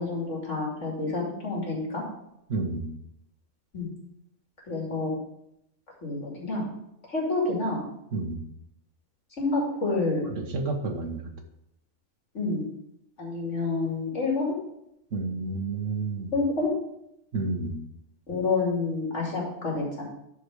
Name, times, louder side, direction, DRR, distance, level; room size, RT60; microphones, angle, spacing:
voice 1, 0.0-2.0 3.7-3.9 4.7-5.1 6.0-6.7 7.1-7.8 9.4-10.2 12.3-12.7 13.2-14.6 16.3-16.7 18.3-20.0, left 3 dB, 55° left, -2 dB, 2.9 m, -28 dB
voice 2, 2.5-2.9 8.1-8.4 10.3-11.2 15.1-16.3 17.3-17.8, right 3 dB, 60° right, 4 dB, 1.5 m, -30 dB
12.0 x 4.8 x 4.8 m, 0.79 s
omnidirectional pair, 1.5 m